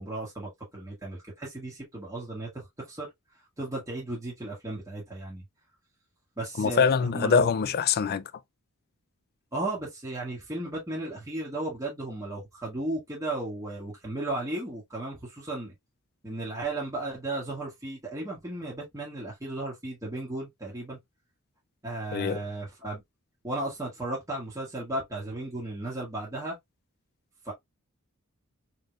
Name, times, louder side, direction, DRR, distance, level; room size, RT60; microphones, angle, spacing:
voice 1, 0.0-3.1 3.6-5.4 6.4-7.5 9.5-15.7 16.2-21.0 21.8-23.0 23.4-26.6 27.4-27.5, right 2 dB, 15° right, 1.5 m, -35 dB
voice 2, 6.6-8.3 22.1-22.4, left 6 dB, 45° left, 0.4 m, -24 dB
4.1 x 3.2 x 2.3 m
head